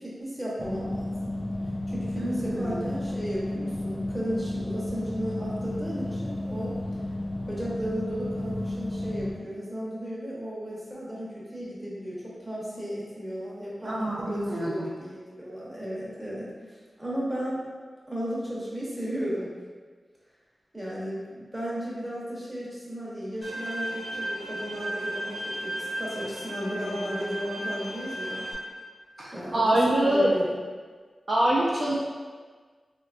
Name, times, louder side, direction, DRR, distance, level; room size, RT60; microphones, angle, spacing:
voice 1, 0.0-1.4 1.9-6.8 7.5-17.6 18.1-19.5 20.7-28.5 29.3-29.6 30.0-30.5, equal, 5° right, -7 dB, 0.7 m, -34 dB
sound 1, 0.6-9.3, left 1 dB, 25° left, 0.3 m, -32 dB
voice 2, 2.2-2.9 13.8-14.9 29.2-30.3 31.3-32.0, right 1 dB, 45° right, -6 dB, 0.4 m, -25 dB
Bowed string instrument, 23.4-28.5, right 1 dB, 90° left, 0.8 m, -35 dB
3.5 x 2.2 x 2.4 m, 1.5 s
wide cardioid pair, 125°, 0 cm